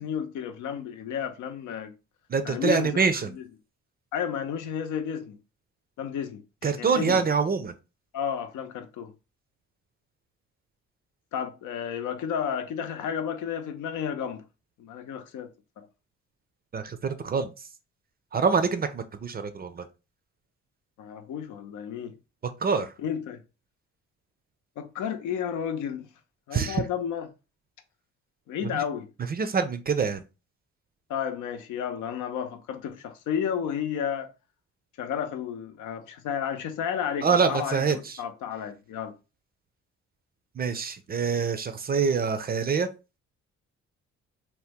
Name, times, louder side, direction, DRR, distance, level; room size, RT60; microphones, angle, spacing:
voice 1, 0.0-1.9 2.4-3.0 3.4-3.5 4.1-5.4 6.0-7.2 8.1-9.1 11.3-14.4 14.8-15.5 15.8-15.9 21.0-22.1 23.0-23.4 24.8-26.1 26.5-27.3 28.5-29.1 31.1-34.3 35.0-39.1, left 8 dB, 80° left, 0.6 m, -32 dB
voice 2, 2.3-3.4 6.6-7.7 16.7-17.5 18.3-19.9 22.4-22.9 26.5-26.8 28.7-28.8 29.2-30.2 37.2-38.2 40.6-42.9, right 5 dB, 30° right, 0.4 m, -25 dB
2.9 x 2.1 x 3.4 m
cardioid pair, 90°, 30 cm